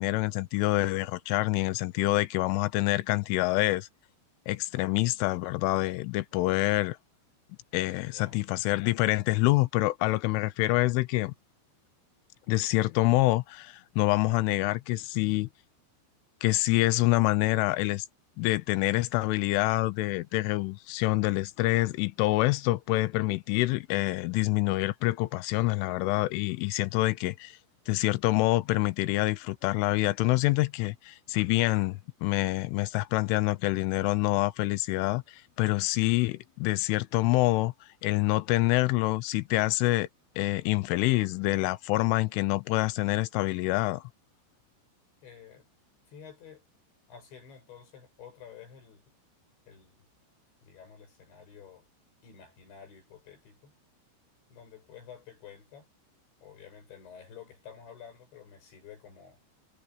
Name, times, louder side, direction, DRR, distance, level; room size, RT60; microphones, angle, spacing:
voice 1, 0.0-3.9 4.5-7.0 7.7-11.3 12.5-15.5 16.4-18.1 18.4-27.6 27.9-37.7 38.0-40.1 40.4-44.0, left 20 dB, 85° left, 3.2 m, -26 dB
voice 2, 8.0-8.5 45.2-45.7 46.1-46.7 47.1-49.0 49.7-50.0 50.6-51.9 52.2-53.7 54.5-55.9 56.4-59.4, left 7 dB, 65° left, 8.8 m, -50 dB
omnidirectional pair, 5.7 m